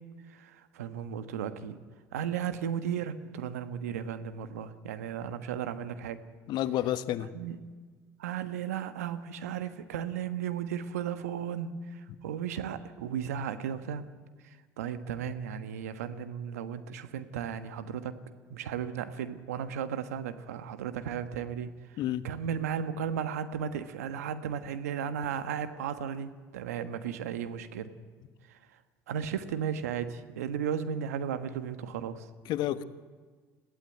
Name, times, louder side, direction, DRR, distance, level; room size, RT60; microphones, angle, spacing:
voice 1, 0.3-1.8 2.1-6.2 7.3-7.6 8.2-14.1 14.4-18.2 18.5-21.7 22.2-27.9 29.1-32.3, right 8 dB, 90° right, 11 dB, 1.4 m, -35 dB
voice 2, 6.5-7.3 22.0-22.3 32.4-32.8, left 13 dB, 65° left, 12 dB, 1.2 m, -30 dB
22.0 x 15.5 x 9.2 m, 1.5 s
hypercardioid pair, 75°, 8 cm